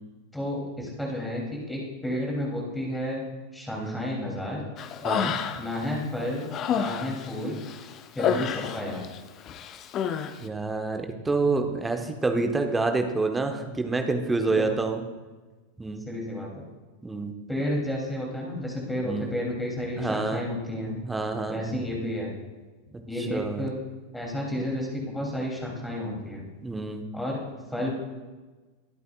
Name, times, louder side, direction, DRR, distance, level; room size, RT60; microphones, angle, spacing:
voice 1, 0.3-3.2 3.5-4.6 5.6-7.6 8.1-9.1 14.5-14.8 16.1-16.6 17.5-21.0 21.5-22.4 23.1-23.8 24.1-26.5 27.1-27.4 27.7-27.9, left 1 dB, 5° left, -2 dB, 3.0 m, -31 dB
Human voice, 4.8-5.8 6.2-9.2 9.5-10.3, left 8 dB, 30° left, 0.7 m, -29 dB
voice 2, 10.4-15.0 15.8-16.0 17.0-17.3 19.0-19.3 20.0-20.4 21.0-21.6 23.2-23.7 26.6-27.0, right 3 dB, 10° right, 5 dB, 1.2 m, -28 dB
22.0 x 8.3 x 2.4 m, 1.3 s
figure-of-eight pair, 90°, 0 cm